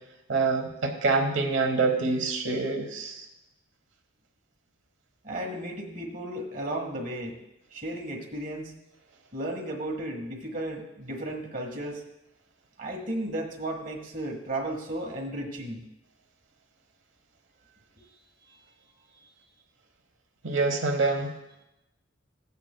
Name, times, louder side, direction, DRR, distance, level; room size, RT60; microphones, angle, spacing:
voice 1, 0.3-3.2 20.4-21.3, right 3 dB, 70° right, 4 dB, 1.1 m, -26 dB
voice 2, 5.2-7.4 7.7-8.7 9.3-12.0 12.8-15.9 18.0-18.1, right 1 dB, 45° right, 1 dB, 1.7 m, -34 dB
16.5 x 8.2 x 2.3 m, 0.89 s
head